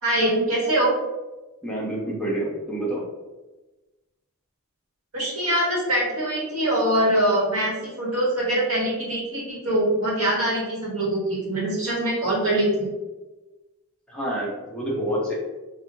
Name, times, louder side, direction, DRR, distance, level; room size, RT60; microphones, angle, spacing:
voice 1, 0.0-0.9 5.1-12.9, right 1 dB, 70° right, -4 dB, 1.2 m, -23 dB
voice 2, 1.6-3.0 14.1-15.3, right 1 dB, 5° left, -6 dB, 0.7 m, -28 dB
4.1 x 2.2 x 2.6 m, 1.1 s
head